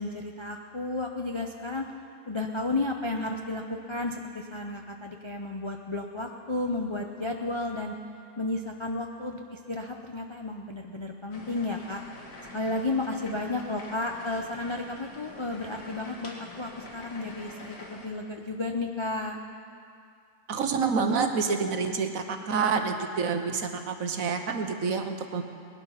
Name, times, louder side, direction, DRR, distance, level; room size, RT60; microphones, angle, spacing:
voice 1, 0.0-1.8 2.3-3.6 3.9-7.9 8.4-12.0 12.5-19.4, left 2 dB, 35° left, 2 dB, 0.4 m, -32 dB
sound 1, 11.3-18.1, left 2 dB, 75° left, 2.3 m, -46 dB
voice 2, 20.5-25.4, right 5 dB, 60° right, 6 dB, 1.3 m, -28 dB
19.5 x 11.5 x 5.7 m, 2.4 s
omnidirectional pair, 1.8 m